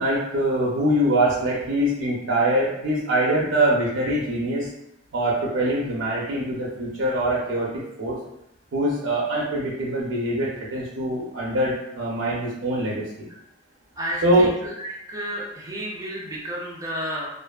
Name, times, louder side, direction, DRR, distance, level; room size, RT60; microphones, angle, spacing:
voice 1, 0.0-4.7 5.1-7.7 8.0-8.2 8.7-13.3 14.2-14.5, right 1 dB, 75° right, -4 dB, 0.5 m, -23 dB
voice 2, 14.0-17.3, equal, 15° right, -4 dB, 0.5 m, -32 dB
2.5 x 2.4 x 2.3 m, 0.82 s
head